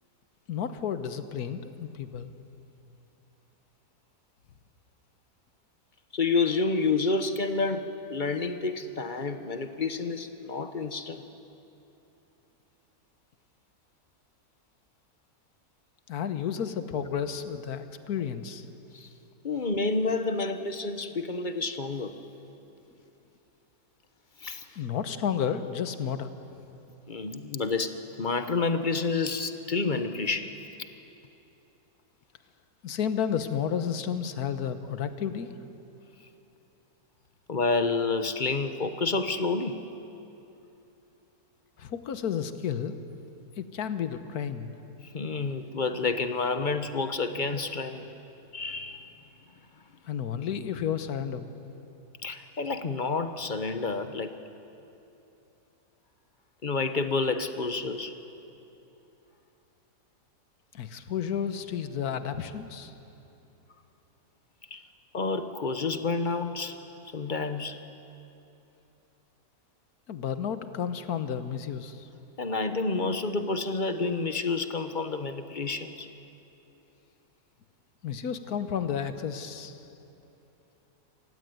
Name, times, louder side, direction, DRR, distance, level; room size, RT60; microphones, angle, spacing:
voice 1, 0.5-2.3 16.1-18.7 24.8-26.3 32.8-35.5 41.8-43.0 43.6-44.8 50.1-51.5 60.7-62.9 70.1-72.1 78.0-79.9, left 8 dB, 75° left, 10 dB, 1.6 m, -32 dB
voice 2, 6.1-11.2 18.9-19.1 19.4-22.1 24.4-24.8 27.1-30.5 37.5-39.8 45.0-48.1 48.5-49.1 52.2-54.3 56.6-58.1 64.7-64.8 65.1-66.8 67.1-67.8 72.4-76.1, left 3 dB, 35° left, 9 dB, 1.0 m, -29 dB
27.5 x 16.0 x 9.4 m, 2.9 s
omnidirectional pair, 1.7 m